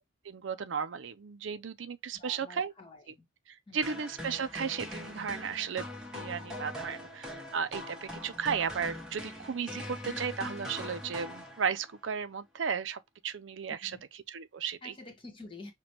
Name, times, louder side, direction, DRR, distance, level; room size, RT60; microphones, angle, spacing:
voice 1, 0.3-2.7 3.7-14.0 14.3-14.9, right 6 dB, 70° right, 0.5 m, -35 dB
voice 2, 2.1-3.3 3.7-4.0 13.8-14.0 14.8-15.7, left 2 dB, 25° left, 1.3 m, -49 dB
sound 1, 3.8-11.9, left 1 dB, 5° right, 1.1 m, -42 dB
5.9 x 2.2 x 2.9 m
head